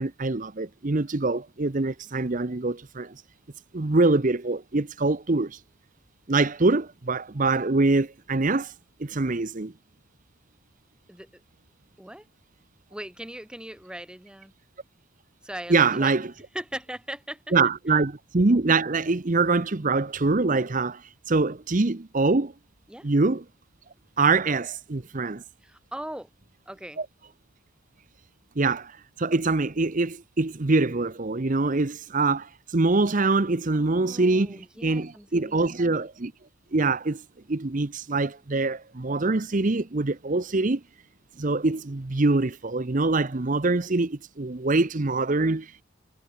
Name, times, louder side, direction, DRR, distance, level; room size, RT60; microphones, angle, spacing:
voice 1, 0.0-3.2 3.7-5.6 6.3-8.7 9.0-9.7 15.7-16.3 17.5-22.5 23.0-23.4 24.2-25.4 27.0-27.1 28.6-36.3 36.7-37.2 37.5-40.8 41.4-45.8, right 3 dB, 35° right, 0.8 m, -24 dB
voice 2, 12.9-14.5 15.4-16.1 16.5-17.4 22.9-23.1 25.6-26.3 26.7-27.0 33.7-35.8, right 1 dB, 5° right, 1.4 m, -39 dB
head